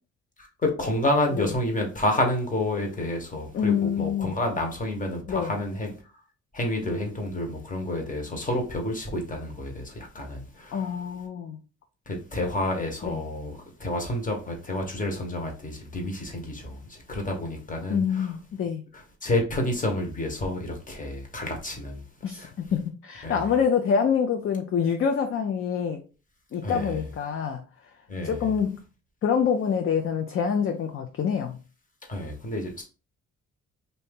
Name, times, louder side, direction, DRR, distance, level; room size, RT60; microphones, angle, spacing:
voice 1, 0.4-5.9 6.5-10.9 12.1-18.3 18.9-22.0 22.3-22.5 23.2-23.4 26.6-27.0 28.1-28.4 32.1-32.8, left 1 dB, 25° left, 1.2 m, -29 dB
voice 2, 3.5-4.3 5.3-5.5 10.7-11.6 13.0-13.2 17.9-18.8 22.2-26.0 26.5-27.6 28.2-28.8 29.2-31.6, left 7 dB, 45° left, 0.5 m, -26 dB
2.7 x 2.7 x 3.5 m
cardioid pair, 90°, 30 cm